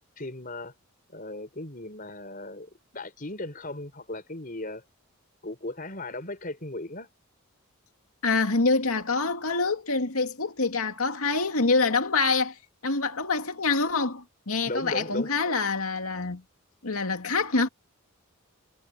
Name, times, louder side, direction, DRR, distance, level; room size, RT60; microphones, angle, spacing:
voice 1, 0.2-0.7 1.1-4.8 5.4-7.1 14.6-15.3, left 2 dB, 40° left, 5.1 m, -36 dB
voice 2, 8.2-12.5 12.8-16.4 16.8-17.7, left 3 dB, 85° left, 2.3 m, -26 dB
head